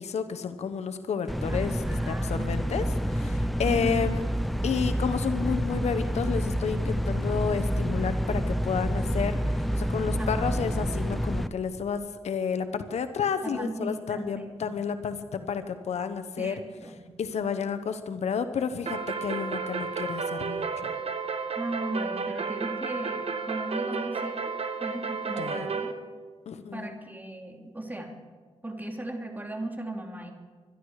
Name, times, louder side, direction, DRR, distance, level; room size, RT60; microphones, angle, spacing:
voice 1, 0.0-1.7 2.1-4.2 4.6-16.5 17.2-20.9 25.4-25.7 26.5-26.9, left 6 dB, 80° left, 9 dB, 1.0 m, -31 dB
sound 1, 1.3-11.5, equal, ahead, 0.8 m, -28 dB
voice 2, 1.5-2.5 3.7-4.1 10.2-10.6 13.4-14.7 16.4-17.0 21.6-25.9 26.7-28.2 28.6-30.3, right 1 dB, 15° right, 2 dB, 3.0 m, -37 dB
sound 2, 18.9-25.9, right 5 dB, 65° right, 1.4 m, -32 dB
25.0 x 11.5 x 4.9 m, 1.5 s
cardioid pair, 65°, 11 cm